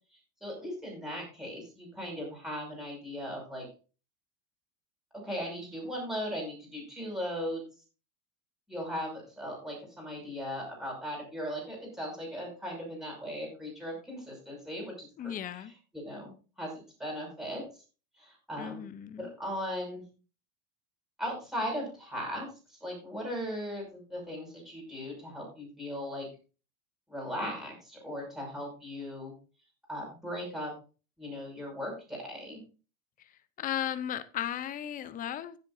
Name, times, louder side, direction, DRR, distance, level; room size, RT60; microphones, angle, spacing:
voice 1, 0.4-3.7 5.2-7.7 8.7-15.3 15.9-16.3 16.6-16.7 17.0-17.6 18.2-18.8 19.2-20.0 21.2-26.3 27.1-29.3 29.9-30.7 31.2-32.6, equal, ahead, -2 dB, 5.8 m, -38 dB
voice 2, 15.2-15.7 18.6-19.3 33.6-35.6, left 10 dB, 20° left, 14 dB, 0.6 m, -35 dB
16.0 x 8.1 x 2.6 m, 0.35 s
supercardioid pair, 145°, 46 cm